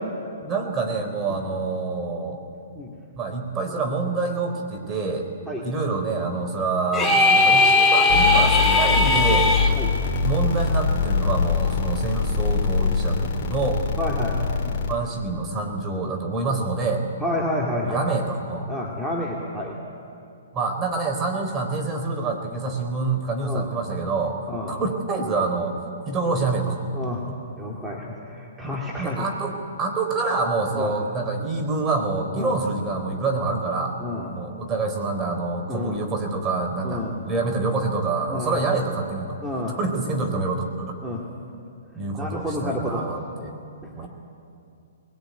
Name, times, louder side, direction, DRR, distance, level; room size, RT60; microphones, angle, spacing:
voice 1, 0.4-2.4 3.2-5.3 5.6-9.5 10.2-13.8 14.6-17.0 17.7-18.7 20.5-24.4 24.7-25.8 26.1-26.8 27.3-27.4 28.6-33.9 34.3-39.4 39.7-40.9 41.9-43.5 44.0-44.1, right 3 dB, 20° right, 3 dB, 3.8 m, -26 dB
sound 1, 6.9-9.7, left 3 dB, 10° left, 2.1 m, -18 dB
sound 2, 8.1-14.9, left 4 dB, 40° left, 3.1 m, -23 dB
voice 2, 14.0-14.4 17.2-18.0 18.7-19.8 23.4-23.7 24.5-24.8 26.9-27.2 27.6-29.2 30.7-30.9 32.4-32.5 34.0-34.3 35.7-36.0 36.8-37.1 38.3-38.6 39.4-39.8 41.0-41.2 42.2-43.1 43.8-44.1, left 1 dB, 5° right, -4 dB, 2.6 m, -30 dB
20.5 x 19.0 x 9.5 m, 2.5 s
hypercardioid pair, 135°, 0 cm